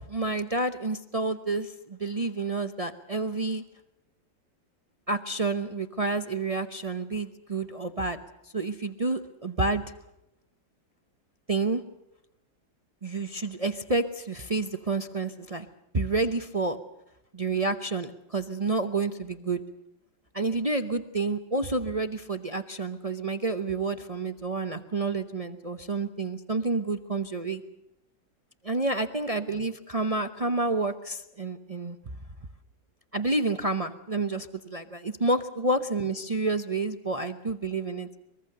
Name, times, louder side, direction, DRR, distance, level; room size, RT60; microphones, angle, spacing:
voice 1, 0.1-3.6 5.1-8.2 8.5-9.8 11.5-11.8 13.0-15.7 15.9-16.8 17.3-19.6 20.3-27.6 28.6-32.0 33.1-38.2, right 3 dB, 50° right, 9 dB, 0.4 m, -29 dB
23.5 x 22.0 x 6.8 m, 0.85 s
omnidirectional pair, 2.1 m